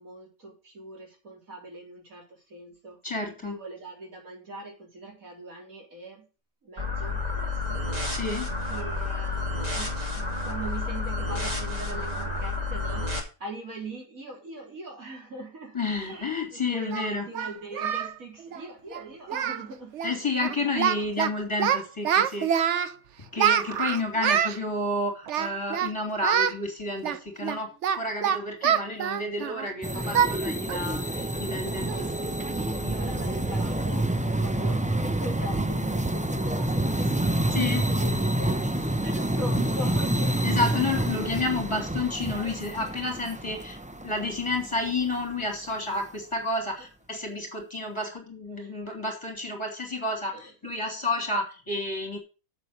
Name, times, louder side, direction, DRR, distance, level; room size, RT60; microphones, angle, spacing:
voice 1, 0.0-3.0 3.4-6.3 6.6-8.1 8.7-9.5 9.8-19.9 20.2-20.3 20.6-21.1 32.5-34.1 34.4-40.7 46.8-46.9 48.6-48.7 50.3-50.7, right 2 dB, 90° right, -1 dB, 4.1 m, -41 dB
voice 2, 3.0-3.6 8.1-8.5 15.7-17.2 20.0-22.5 23.2-32.3 37.5-37.8 40.4-52.2, left 2 dB, 20° left, 2 dB, 3.3 m, -30 dB
sound 1, 6.8-13.2, left 3 dB, 30° right, 2.7 m, -30 dB
Singing, 16.1-16.2 16.9-18.1 18.4-18.6 18.9-19.0 19.3-19.7 19.9-20.2 20.4-21.3 21.6-22.9 23.4-24.6 25.3-25.9 26.2-26.6 27.0-29.7 30.1-30.3 30.7-30.9 31.3-31.4 31.9-32.1, right 8 dB, 60° right, 1.0 m, -26 dB
sound 2, 29.8-45.1, right 1 dB, 10° right, 0.3 m, -28 dB
7.7 x 7.3 x 6.6 m, 0.33 s
omnidirectional pair, 1.4 m